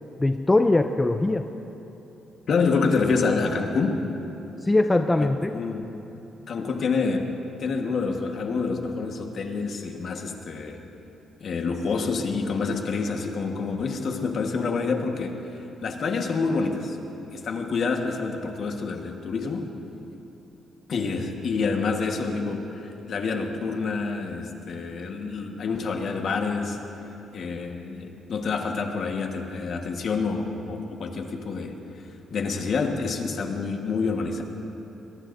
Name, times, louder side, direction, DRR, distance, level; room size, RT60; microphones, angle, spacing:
voice 1, 0.2-1.5 4.6-5.6, left 2 dB, 15° left, 7 dB, 0.4 m, -21 dB
voice 2, 2.5-4.0 5.2-6.0 6.5-10.8 11.4-17.0 17.3-19.7 20.9-26.8 27.3-31.8 32.3-34.4, left 4 dB, 50° left, 3 dB, 1.4 m, -27 dB
22.5 x 21.5 x 2.6 m, 3.0 s
cardioid pair, 145°, 0 cm